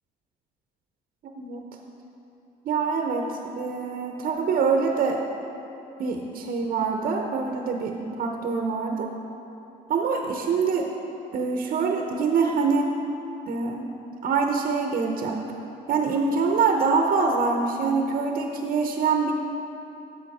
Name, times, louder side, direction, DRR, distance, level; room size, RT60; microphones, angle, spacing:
voice 1, 1.4-1.7 2.6-5.2 6.0-9.1 9.9-10.9 11.3-12.9 13.5-13.9 14.2-15.4 15.9-19.3, right 5 dB, 55° right, 2 dB, 0.8 m, -25 dB
11.0 x 7.5 x 4.1 m, 2.9 s
cardioid pair, 110°, 17 cm